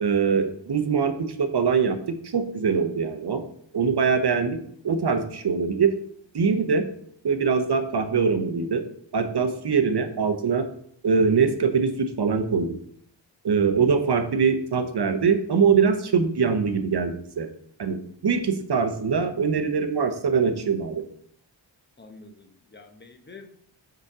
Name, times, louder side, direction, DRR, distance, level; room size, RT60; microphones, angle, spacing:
voice 1, 0.0-2.0 2.2-3.4 3.7-4.6 4.8-6.0 6.3-6.8 7.2-8.8 9.1-10.7 11.0-12.8 13.4-17.5 17.8-18.0 18.2-21.0, right 5 dB, 55° right, 7 dB, 0.8 m, -23 dB
voice 2, 22.0-23.5, left 3 dB, 25° left, 5 dB, 0.8 m, -47 dB
5.3 x 5.1 x 3.6 m, 0.65 s
wide cardioid pair, 60°, 47 cm